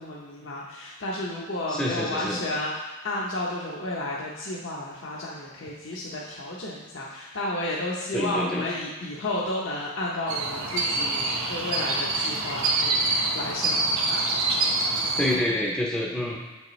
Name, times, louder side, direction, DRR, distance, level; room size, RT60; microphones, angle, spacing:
voice 1, 0.0-14.2 16.0-16.2, left 1 dB, 65° left, -4 dB, 0.7 m, -32 dB
voice 2, 1.7-2.4 8.1-8.6 15.2-16.4, left 1 dB, 5° left, -3 dB, 0.5 m, -27 dB
sound 1, 10.3-15.3, right 2 dB, 85° right, 1.0 m, -26 dB
7.7 x 5.3 x 3.1 m, 1.2 s
head